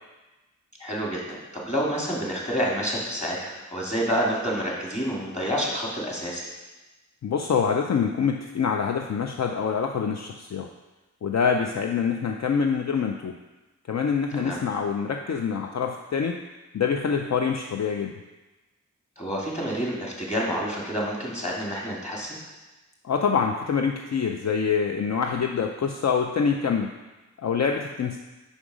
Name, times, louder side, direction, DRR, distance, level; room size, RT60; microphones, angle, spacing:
voice 1, 0.8-6.5 14.3-14.6 19.2-22.4, equal, 20° left, -3 dB, 2.3 m, -28 dB
voice 2, 7.2-10.7 11.2-13.4 13.9-16.4 16.7-18.1 23.0-26.9 27.4-28.2, left 6 dB, 60° left, 3 dB, 0.5 m, -25 dB
5.2 x 5.2 x 4.8 m, 1.1 s
cardioid pair, 40°, 31 cm